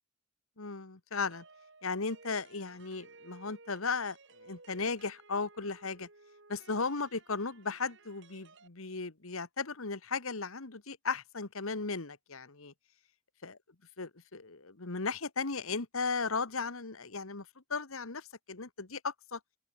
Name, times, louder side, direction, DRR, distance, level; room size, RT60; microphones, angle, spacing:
voice 1, 0.6-1.4 1.8-4.2 4.4-6.1 6.5-12.7 13.4-13.6 14.0-17.4 17.7-19.4, left 4 dB, 70° left, 1.6 m, -36 dB
sound 1, 1.3-8.7, right 3 dB, 55° right, 3.9 m, -58 dB
open air
head